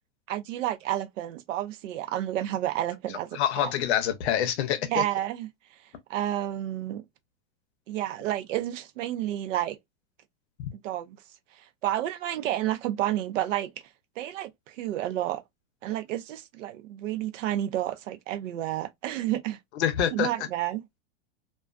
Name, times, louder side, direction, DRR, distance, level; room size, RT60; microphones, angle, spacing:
voice 1, 0.3-3.7 4.8-5.5 6.1-7.0 7.9-9.8 10.8-11.2 11.5-13.7 14.2-15.4 15.8-19.6 20.1-20.8, right 13 dB, 80° right, 0.6 m, -30 dB
voice 2, 3.3-5.0 10.6-10.7 19.8-20.3, left 10 dB, 60° left, 0.6 m, -26 dB
2.3 x 2.2 x 2.3 m
supercardioid pair, 170°, 38 cm